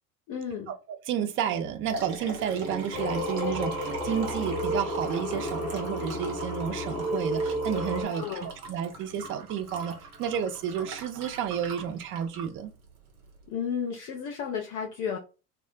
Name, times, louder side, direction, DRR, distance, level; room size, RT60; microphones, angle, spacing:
voice 1, 0.3-0.7 8.1-8.5 13.5-15.2, left 7 dB, 45° left, 0.7 m, -33 dB
voice 2, 0.9-12.7, right 8 dB, 30° right, 0.4 m, -31 dB
Liquid, 1.5-13.4, right 3 dB, 75° right, 1.0 m, -41 dB
Singing, 2.9-8.0, equal, 10° left, 0.8 m, -32 dB
2.2 x 2.0 x 3.7 m
hypercardioid pair, 75°, 46 cm